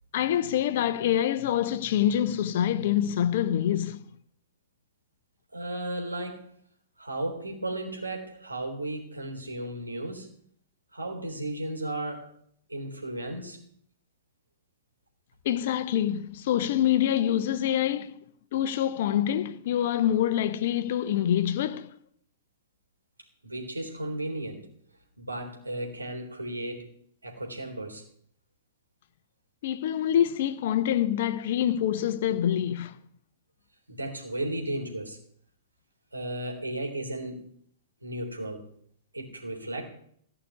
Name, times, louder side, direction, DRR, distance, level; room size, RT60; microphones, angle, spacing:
voice 1, 0.1-4.1 15.4-18.2 18.5-21.9 29.6-33.0, left 10 dB, 50° left, 0.9 m, -26 dB
voice 2, 5.5-6.5 7.0-10.3 10.9-12.3 12.7-13.6 23.4-24.7 25.2-26.9 27.2-28.0 33.9-35.2 36.1-37.4 38.0-38.7 39.1-39.9, right 1 dB, 85° right, 3.7 m, -34 dB
15.5 x 6.1 x 9.6 m
figure-of-eight pair, 110°, 0 cm